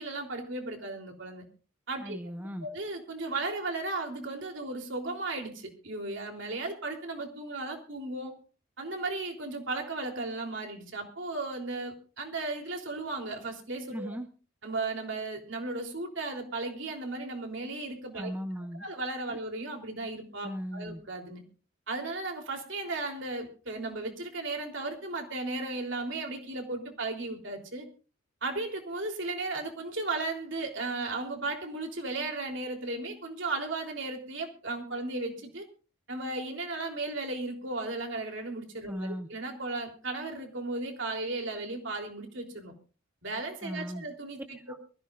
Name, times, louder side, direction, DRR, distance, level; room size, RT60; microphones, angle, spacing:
voice 1, 0.0-1.4 1.9-2.2 2.6-8.3 8.8-14.2 14.6-18.3 18.8-21.4 21.9-27.9 28.4-35.6 36.1-42.7 43.2-44.6, right 2 dB, 60° right, 2 dB, 3.5 m, -35 dB
voice 2, 2.0-2.7 13.9-14.3 18.1-18.8 19.3-19.4 20.4-21.0 38.8-39.3 43.6-44.0 44.7-44.8, equal, 10° right, 6 dB, 0.9 m, -37 dB
23.5 x 15.5 x 2.5 m, 0.36 s
head